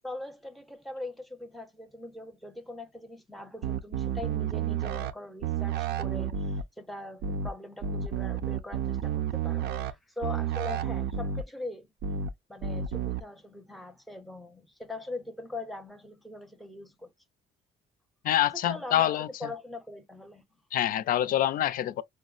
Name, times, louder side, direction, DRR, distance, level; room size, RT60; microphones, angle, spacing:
voice 1, 0.0-11.9 12.5-17.1 18.4-20.4, left 2 dB, ahead, 0.6 m, -41 dB
sound 1, 3.6-5.1 5.4-6.6 7.2-7.5 7.8-9.9 10.2-11.4 12.0-12.3 12.6-13.2, right 8 dB, 75° right, 0.5 m, -31 dB
voice 2, 18.2-19.3 20.7-22.0, left 12 dB, 55° left, 0.4 m, -26 dB
4.5 x 2.0 x 2.4 m
cardioid pair, 110°, 17 cm